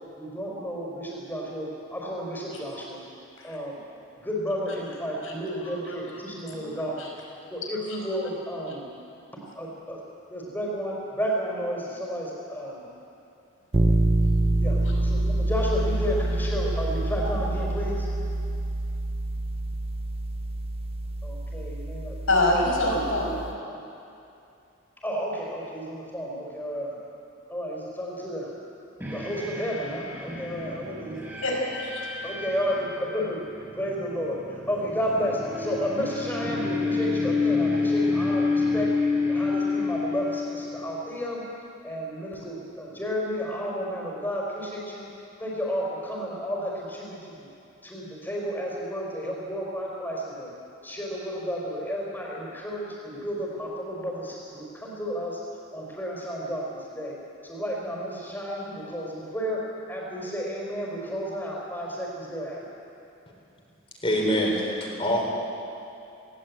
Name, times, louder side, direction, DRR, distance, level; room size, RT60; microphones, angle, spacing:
voice 1, 0.2-3.0 3.4-3.8 4.2-7.0 7.5-8.9 9.5-10.0 10.3-12.9 13.8-14.0 14.6-18.1 21.2-22.7 23.7-23.8 25.0-27.0 27.5-28.5 29.1-31.3 32.0-33.4 33.7-38.9 39.3-41.4 41.8-45.1 45.4-47.4 47.8-50.5 50.8-55.4 55.7-57.2 57.4-62.6, equal, 10° left, -3 dB, 4.5 m, -32 dB
voice 2, 6.5-7.1 22.3-23.4 31.4-32.0, left 1 dB, 80° left, -1 dB, 5.3 m, -25 dB
sound 1, 13.7-23.5, right 1 dB, 30° right, 0.5 m, -27 dB
sound 2, 29.0-41.1, left 3 dB, 10° right, 4.2 m, -29 dB
voice 3, 64.0-65.3, equal, 25° left, -2 dB, 3.8 m, -25 dB
19.0 x 18.5 x 8.5 m, 2.7 s
head